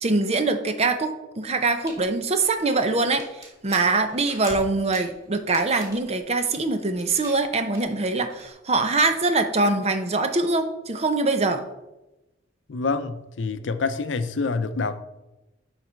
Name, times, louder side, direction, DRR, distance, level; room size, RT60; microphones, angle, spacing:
voice 1, 0.0-3.2 3.6-11.6, right 3 dB, 35° right, 8 dB, 0.7 m, -23 dB
sound 1, 1.8-8.5, right 1 dB, 20° right, 2.2 m, -44 dB
voice 2, 12.7-15.0, left 4 dB, 75° left, 11 dB, 0.6 m, -27 dB
11.0 x 4.2 x 4.4 m, 0.98 s
head